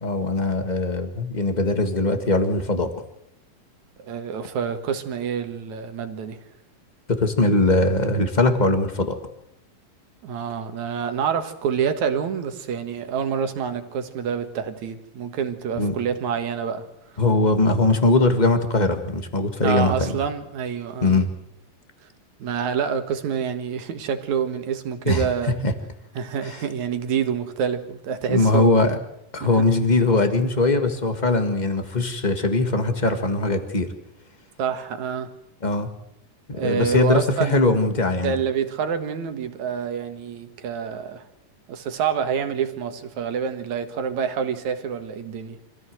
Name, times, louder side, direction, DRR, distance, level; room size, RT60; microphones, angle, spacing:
voice 1, 0.0-2.9 7.1-9.2 15.8-15.9 17.2-20.2 21.0-21.3 25.1-25.3 25.6-25.7 26.4-26.6 28.3-29.0 29.3-33.9 35.6-35.9 36.5-38.4, left 2 dB, 30° left, 7 dB, 0.8 m, -21 dB
voice 2, 4.0-6.4 10.2-16.9 19.6-21.2 22.4-25.6 26.2-28.8 29.4-29.5 34.6-35.3 36.5-37.6 38.2-41.2 41.7-45.6, right 7 dB, 65° right, 8 dB, 2.7 m, -27 dB
25.5 x 15.5 x 7.8 m, 0.80 s
omnidirectional pair, 3.8 m